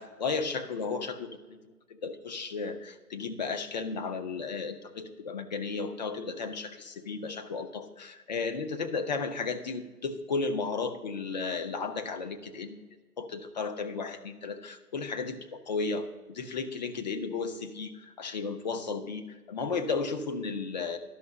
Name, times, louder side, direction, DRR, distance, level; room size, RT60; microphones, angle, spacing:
voice 1, 0.0-1.6 1.9-12.8 13.2-21.0, left 4 dB, 30° left, 8 dB, 0.6 m, -34 dB
11.0 x 6.1 x 6.5 m, 1.3 s
figure-of-eight pair, 135°, 46 cm